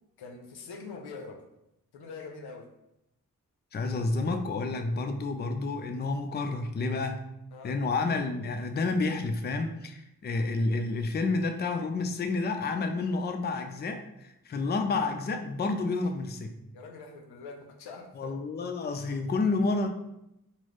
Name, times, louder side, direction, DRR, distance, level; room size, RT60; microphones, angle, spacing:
voice 1, 0.2-1.4 1.9-2.7 7.5-7.8 16.7-18.3, left 4 dB, 85° left, 3 dB, 0.6 m, -44 dB
voice 2, 3.7-7.2 7.6-16.5 18.1-19.9, left 3 dB, 25° left, 6 dB, 0.4 m, -30 dB
3.7 x 2.0 x 3.1 m, 0.84 s
supercardioid pair, 40°, 38 cm